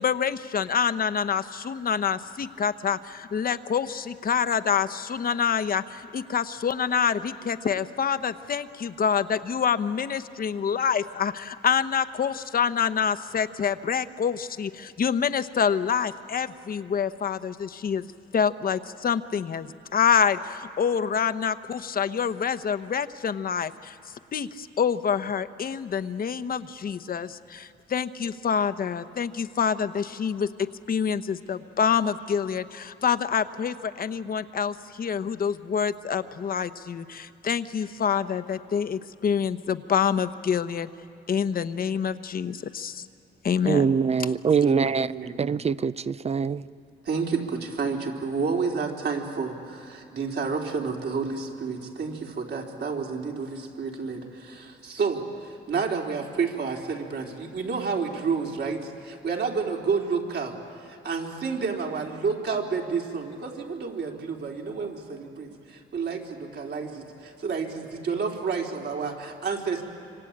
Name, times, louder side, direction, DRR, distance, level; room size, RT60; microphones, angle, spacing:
voice 1, 0.0-18.0 18.3-24.0 24.3-40.9 41.3-43.0 43.4-43.9, left 7 dB, 45° left, 1.1 m, -27 dB
voice 2, 43.6-45.1 45.4-46.7, right 6 dB, 30° right, 0.6 m, -23 dB
voice 3, 44.6-45.4 47.0-60.5 60.8-69.8, right 5 dB, 55° right, 4.0 m, -30 dB
26.0 x 25.5 x 8.9 m
cardioid pair, 90°, 20 cm